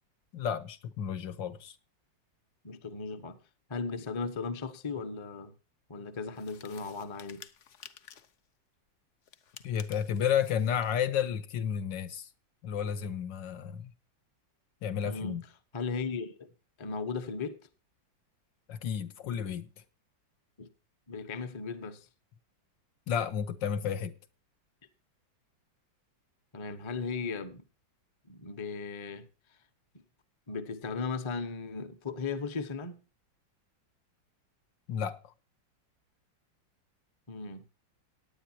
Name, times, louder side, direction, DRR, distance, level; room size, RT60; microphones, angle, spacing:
voice 1, 0.3-1.8 9.6-12.3 12.6-13.9 14.8-15.4 18.7-19.7 23.1-24.1 34.9-35.2, left 8 dB, 75° left, 1.6 m, -32 dB
voice 2, 2.6-3.4 3.7-5.5 5.9-7.4 15.0-15.4 15.7-16.5 16.8-17.6 20.6-20.7 21.1-22.1 26.5-27.6 28.3-29.3 30.5-33.0 37.3-37.6, left 4 dB, 25° left, 0.6 m, -36 dB
sound 1, 6.3-8.4 9.2-11.0, left 8 dB, 55° left, 0.8 m, -53 dB
18.0 x 9.5 x 2.8 m
omnidirectional pair, 2.1 m